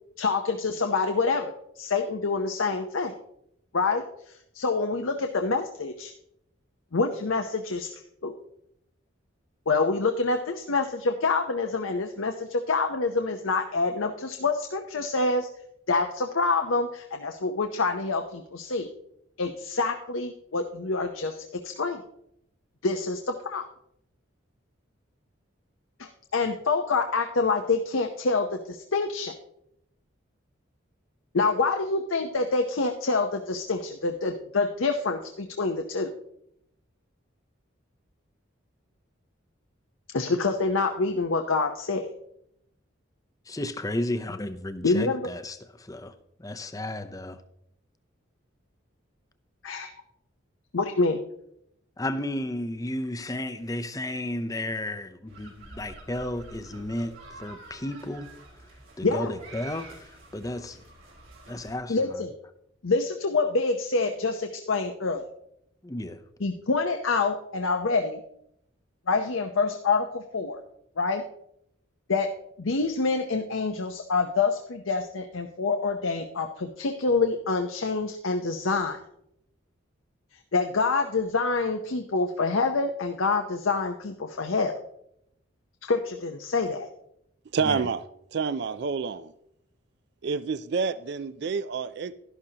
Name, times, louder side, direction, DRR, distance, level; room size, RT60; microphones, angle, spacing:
voice 1, 0.2-3.1 3.7-4.0 4.5-6.1 6.9-7.9 8.2-8.3 9.7-15.5 15.9-18.9 19.4-22.0 22.8-23.7 26.0-29.3 31.3-36.1 40.1-42.1 44.8-45.2 49.6-49.9 50.7-51.2 59.0-59.3 61.9-62.3 62.8-65.2 66.4-68.2 69.1-70.6 71.0-71.2 72.1-72.3 72.6-79.0 80.5-84.7 85.8-86.9, left 3 dB, 80° left, 5 dB, 0.8 m, -26 dB
voice 2, 43.5-46.1 46.4-47.4 52.0-58.3 58.6-58.7 59.0-60.8 61.5-62.2 65.8-66.2 87.6-87.8, left 1 dB, 15° left, 9 dB, 0.6 m, -33 dB
sound 1, 55.3-61.7, right 2 dB, 80° right, 3.8 m, -48 dB
voice 3, 87.5-88.0 88.3-89.3 90.2-92.1, right 5 dB, 55° right, 15 dB, 0.4 m, -28 dB
12.0 x 11.5 x 2.9 m, 0.75 s
head